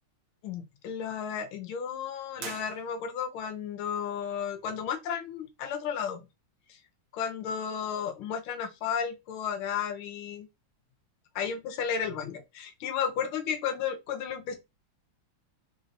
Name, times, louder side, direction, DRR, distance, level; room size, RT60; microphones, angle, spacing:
voice 1, 0.4-6.2 6.7-6.8 7.1-10.5 11.4-14.5, left 7 dB, 75° left, 1.6 m, -33 dB
sound 1, 2.4-3.4, right 6 dB, 70° right, 0.7 m, -44 dB
4.7 x 2.7 x 2.6 m
omnidirectional pair, 2.3 m